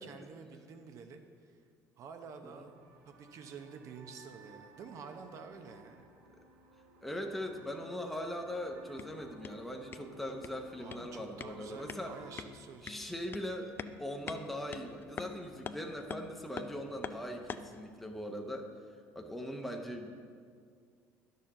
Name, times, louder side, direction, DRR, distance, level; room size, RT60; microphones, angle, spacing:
voice 1, 0.0-1.6 2.0-2.7 3.1-6.1 10.8-13.0, right 5 dB, 55° right, 6 dB, 0.8 m, -49 dB
sound 1, 2.5-12.4, right 3 dB, 85° right, 1.0 m, -57 dB
voice 2, 7.0-12.2 12.8-18.7 19.1-20.1, equal, ahead, 2 dB, 0.8 m, -40 dB
sound 2, 8.7-17.8, left 6 dB, 35° left, 0.4 m, -47 dB
10.0 x 6.7 x 3.8 m, 2.1 s
supercardioid pair, 95°, 6 cm